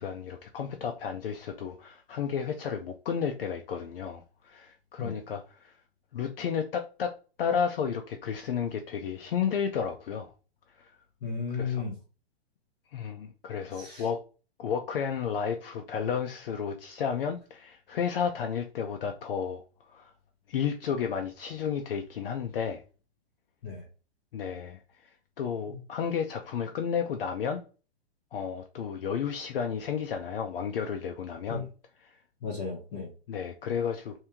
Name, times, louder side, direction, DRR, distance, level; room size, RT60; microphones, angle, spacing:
voice 1, 0.0-5.7 6.1-10.3 10.8-10.9 11.5-11.9 12.9-14.2 14.6-20.1 20.5-22.8 24.3-24.8 25.4-27.6 28.3-31.7 32.0-32.1 33.3-34.2, left 7 dB, 60° left, 0.6 m, -32 dB
voice 2, 11.2-11.9 13.8-14.0 23.6-23.8 25.7-25.8 31.5-31.6 32.4-33.1, left 5 dB, 25° left, 0.7 m, -34 dB
2.9 x 2.7 x 3.5 m
hypercardioid pair, 175°, 33 cm